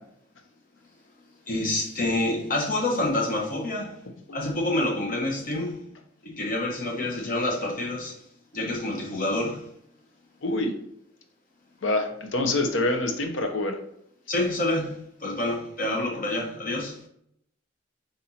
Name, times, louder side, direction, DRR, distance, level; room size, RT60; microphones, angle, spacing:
voice 1, 1.5-4.0 4.3-5.8 6.2-8.2 8.5-9.7 14.3-17.0, left 1 dB, 45° left, 1.1 m, -27 dB
voice 2, 10.4-10.7 11.8-13.8, left 2 dB, 85° left, 0.7 m, -26 dB
4.3 x 2.6 x 4.1 m
head